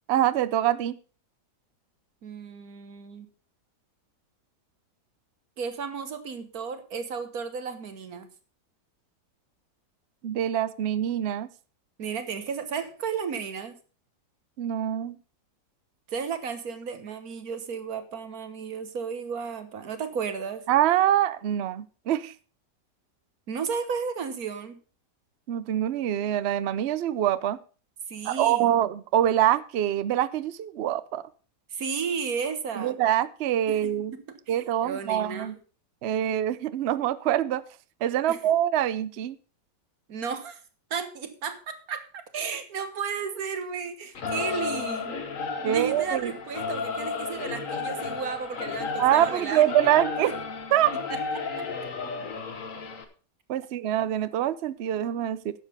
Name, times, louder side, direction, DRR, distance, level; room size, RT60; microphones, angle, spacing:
voice 1, 0.1-1.0 10.2-11.5 14.6-15.2 20.7-22.3 25.5-27.6 28.2-31.2 32.7-34.1 34.5-35.5 36.0-37.6 38.0-39.4 45.6-46.3 49.0-50.3 50.7-50.9 53.5-55.5, right 11 dB, 80° right, 15 dB, 0.5 m, -25 dB
voice 2, 2.2-3.3 5.6-8.3 12.0-13.8 16.1-20.6 23.5-24.8 28.1-28.8 31.7-33.0 33.7-35.5 38.3-38.4 40.1-40.6 40.9-45.2 45.6-49.9 50.3-50.4 51.1-51.6, right 6 dB, 60° right, 9 dB, 1.7 m, -34 dB
Singing / Musical instrument, 44.1-53.0, left 4 dB, 50° left, 1.6 m, -33 dB
10.5 x 7.4 x 5.5 m, 0.37 s
omnidirectional pair, 1.8 m